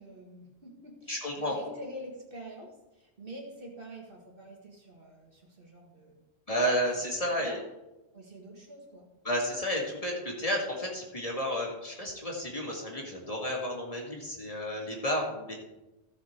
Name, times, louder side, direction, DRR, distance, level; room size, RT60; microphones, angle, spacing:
voice 1, 0.0-6.3 7.2-7.6 8.1-9.1, right 1 dB, 55° right, 0 dB, 2.1 m, -46 dB
voice 2, 1.1-1.6 6.5-7.6 9.2-15.5, equal, 35° left, -2 dB, 2.2 m, -31 dB
15.0 x 6.4 x 4.6 m, 1.0 s
omnidirectional pair, 1.1 m